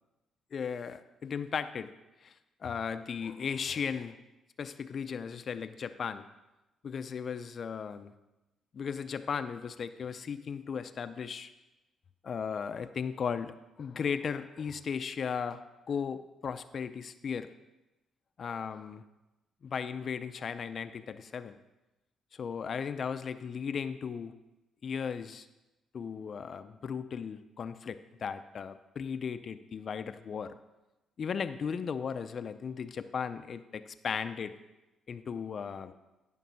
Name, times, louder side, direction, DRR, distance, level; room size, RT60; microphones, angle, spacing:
voice 1, 0.5-1.9 2.2-2.3 2.6-4.2 4.6-6.3 6.8-8.1 8.7-11.5 12.2-13.5 13.8-15.6 15.9-17.5 18.4-19.0 19.6-21.6 22.3-24.3 24.8-25.5 25.9-30.5 31.2-34.5 35.1-35.9, left 6 dB, 50° left, 10 dB, 0.5 m, -36 dB
12.0 x 5.4 x 5.5 m, 1.0 s
cardioid pair, 90°, 0 cm